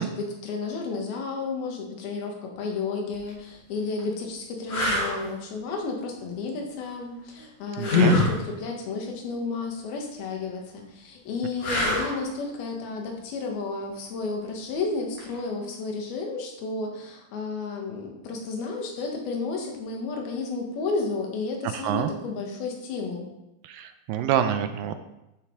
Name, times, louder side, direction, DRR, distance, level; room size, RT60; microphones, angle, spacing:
voice 1, 0.0-23.3, left 4 dB, 85° left, 1 dB, 3.5 m, -32 dB
sound 1, 3.1-3.3 4.0-4.1 4.7-5.2 7.8-8.3 11.6-12.2 15.2-15.4, left 2 dB, 45° left, 3.7 m, -23 dB
voice 2, 7.8-8.2 21.8-22.1 23.7-25.0, right 10 dB, 80° right, 9 dB, 2.2 m, -26 dB
12.5 x 6.3 x 4.7 m, 0.91 s
omnidirectional pair, 4.2 m